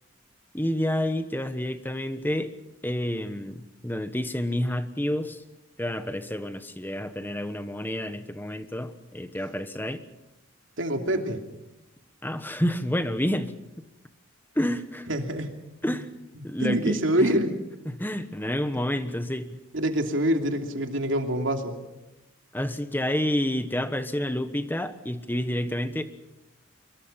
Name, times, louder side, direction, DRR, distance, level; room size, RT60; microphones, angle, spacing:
voice 1, 0.5-2.5 2.8-5.4 5.8-10.0 12.2-13.8 14.5-15.1 15.8-16.1 16.4-17.4 17.8-19.6 22.5-26.0, left 1 dB, 10° left, 10 dB, 1.2 m, -29 dB
voice 2, 10.8-11.4 15.1-15.5 15.8-16.0 16.6-17.6 19.7-21.8, right 1 dB, 70° right, 4 dB, 2.9 m, -25 dB
25.0 x 23.0 x 5.7 m, 0.97 s
head